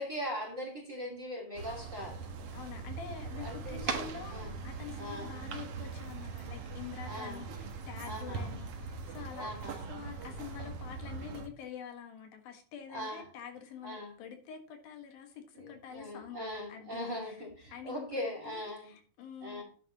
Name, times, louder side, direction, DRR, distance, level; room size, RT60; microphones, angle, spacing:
voice 1, 0.0-2.3 3.4-4.5 5.0-5.4 7.1-7.4 8.0-8.5 9.4-9.9 12.9-13.3 13.8-14.1 15.5-19.0 19.4-19.6, equal, 25° right, 1 dB, 2.4 m, -40 dB
sound 1, 1.6-11.5, right 4 dB, 55° right, 1.8 m, -41 dB
voice 2, 2.5-9.5 9.9-17.3 17.7-19.6, left 7 dB, 75° left, 5 dB, 3.5 m, -47 dB
10.5 x 9.4 x 3.0 m, 0.41 s
omnidirectional pair, 4.2 m